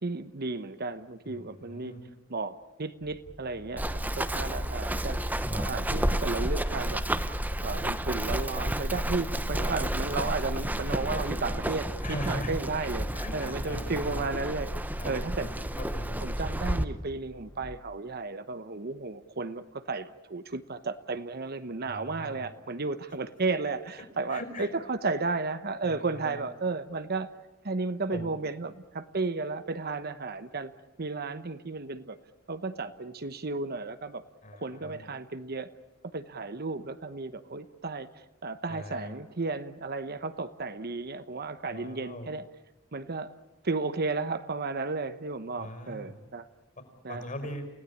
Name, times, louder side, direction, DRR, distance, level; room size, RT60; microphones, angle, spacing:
voice 1, 0.0-1.9 2.3-7.0 7.6-13.1 13.3-14.7 15.0-15.5 16.2-27.3 27.6-30.7 31.0-32.2 32.5-34.2 34.5-35.7 36.1-42.4 42.9-43.3 43.6-46.5 47.0-47.2, right 3 dB, 50° right, 11 dB, 1.0 m, -33 dB
voice 2, 1.2-2.0 5.6-6.1 12.0-12.5 12.8-12.9 13.1-14.3 15.0-16.1 21.8-22.5 24.3-24.7 25.8-26.4 28.1-28.3 34.4-35.0 38.7-39.1 41.7-42.3 45.6-46.1 46.8-47.6, left 1 dB, 40° left, 7 dB, 5.1 m, -41 dB
sound 1, 3.0-17.8, left 1 dB, 15° left, 1.1 m, -47 dB
Run, 3.8-16.8, right 1 dB, 10° right, 1.0 m, -31 dB
29.5 x 17.0 x 8.6 m, 1.0 s
head